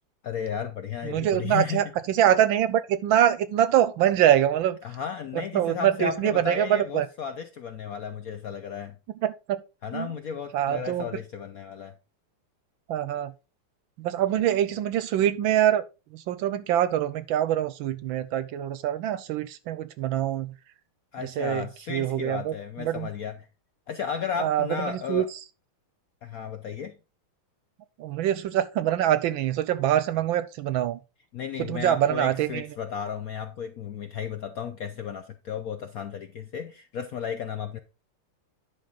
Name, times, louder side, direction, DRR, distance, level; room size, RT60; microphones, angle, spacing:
voice 1, 0.2-1.9 4.8-9.0 9.8-11.9 21.1-23.5 23.9-25.3 26.2-27.0 31.3-37.8, left 7 dB, 85° left, 0.7 m, -34 dB
voice 2, 1.0-4.8 5.3-7.1 9.2-9.6 9.9-10.1 10.5-11.1 12.9-13.3 14.0-15.9 16.1-20.5 21.2-23.1 24.4-25.2 28.0-31.0 31.6-32.7, right 11 dB, 75° right, 1.3 m, -24 dB
10.5 x 5.7 x 3.9 m
omnidirectional pair, 2.4 m